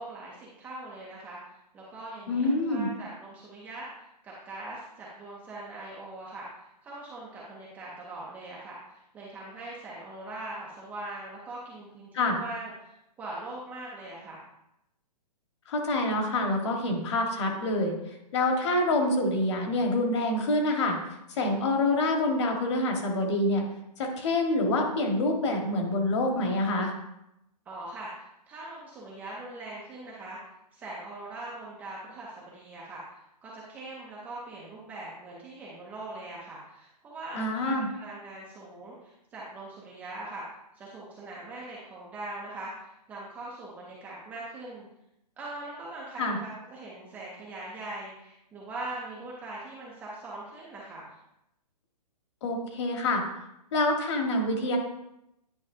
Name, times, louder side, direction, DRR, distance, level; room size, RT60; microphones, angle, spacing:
voice 1, 0.0-14.5 27.7-30.4 30.7-40.4 40.7-44.9 45.4-51.1, right 2 dB, 5° right, -5 dB, 0.5 m, -41 dB
voice 2, 2.3-2.9 12.1-12.4 15.7-17.9 18.3-21.0 21.4-23.6 24.0-26.9 37.3-37.9 46.2-46.4 52.4-53.2 53.7-54.8, left 2 dB, 45° left, 2 dB, 1.5 m, -26 dB
9.6 x 5.2 x 2.7 m, 0.84 s
hypercardioid pair, 165°, 21 cm